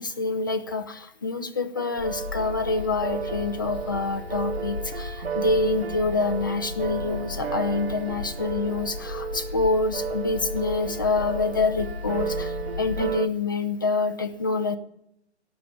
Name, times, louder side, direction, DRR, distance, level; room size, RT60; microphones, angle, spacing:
voice 1, 0.0-14.8, left 3 dB, 20° left, 8 dB, 0.4 m, -27 dB
sound 1, 1.7-13.3, right 7 dB, 60° right, 0.8 m, -33 dB
sound 2, 2.0-13.2, left 4 dB, 60° left, 1.3 m, -36 dB
17.5 x 5.8 x 8.4 m, 0.75 s
figure-of-eight pair, 145°, 34 cm